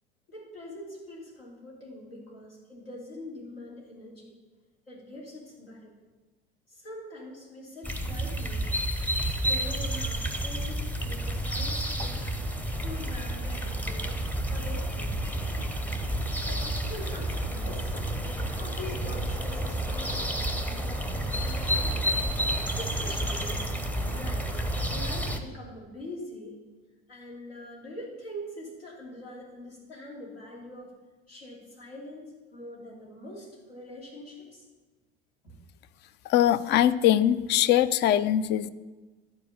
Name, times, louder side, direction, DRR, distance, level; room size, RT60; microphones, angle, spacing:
voice 1, 0.3-4.3 4.9-5.9 6.7-8.6 9.3-12.2 12.7-14.2 14.5-15.1 16.4-18.1 18.5-20.3 20.7-22.0 22.7-23.6 24.1-24.5 24.9-26.6 27.1-30.9 31.3-34.7 35.4-35.5, left 1 dB, 75° left, -3 dB, 3.0 m, -43 dB
sound 1, 7.8-25.4, right 1 dB, 5° left, 0.8 m, -30 dB
voice 2, 36.3-38.7, left 11 dB, 35° left, 16 dB, 0.5 m, -22 dB
11.5 x 4.8 x 7.0 m, 1.2 s
figure-of-eight pair, 65°, 30 cm